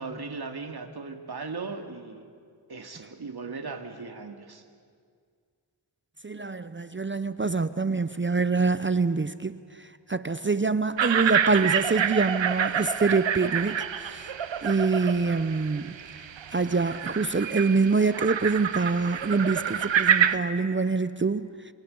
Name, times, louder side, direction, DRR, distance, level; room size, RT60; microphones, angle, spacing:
voice 1, 0.0-2.3 2.7-4.6, right 4 dB, 55° right, 5 dB, 2.3 m, -38 dB
voice 2, 6.2-9.6 10.1-14.3 14.6-15.9 16.5-21.5, right 4 dB, 25° right, 13 dB, 0.7 m, -25 dB
sound 1, 11.0-20.4, right 8 dB, 75° right, 0.9 m, -28 dB
28.0 x 26.5 x 5.4 m, 2.1 s
cardioid pair, 60°, 46 cm